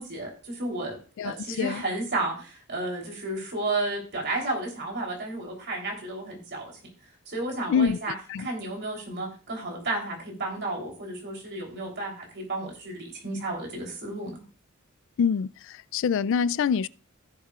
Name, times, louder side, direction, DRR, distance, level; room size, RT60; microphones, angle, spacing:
voice 1, 0.0-1.0 1.2-6.8 7.3-14.4, right 2 dB, 50° right, 3.3 m, -32 dB
voice 2, 1.2-1.8 7.7-8.0 8.3-8.5 15.2-16.9, left 6 dB, 60° left, 0.3 m, -25 dB
16.0 x 7.3 x 2.4 m
head